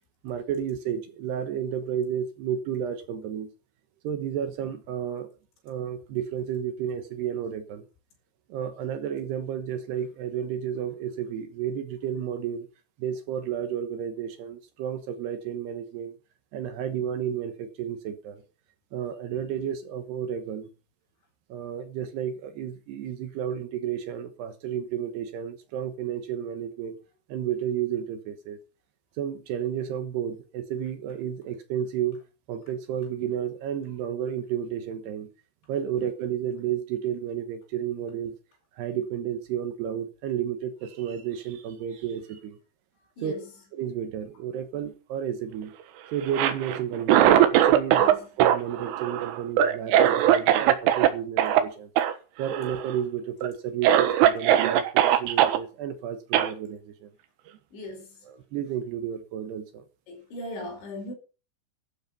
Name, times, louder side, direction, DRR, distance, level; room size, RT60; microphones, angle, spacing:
voice 1, 0.2-3.5 4.0-5.3 5.6-7.8 8.5-12.7 13.0-16.1 16.5-18.4 18.9-20.7 21.5-27.0 27.3-28.6 29.2-32.2 32.5-35.3 35.7-38.3 38.8-42.6 43.2-43.3 43.7-45.7 46.1-48.0 48.4-51.9 52.4-57.1 58.2-59.8, right 9 dB, 70° right, 3.0 m, -32 dB
voice 2, 43.2-43.5 48.0-48.3 57.7-58.2 60.1-61.1, left 1 dB, 70° left, 7.4 m, -38 dB
Cough, 46.2-48.1 48.4-51.1 51.4-51.6 52.0-52.1 52.4-52.9 53.4-53.5 53.8-55.6 56.3-56.5, right 11 dB, 90° right, 3.9 m, -20 dB
13.0 x 12.0 x 5.5 m
omnidirectional pair, 5.5 m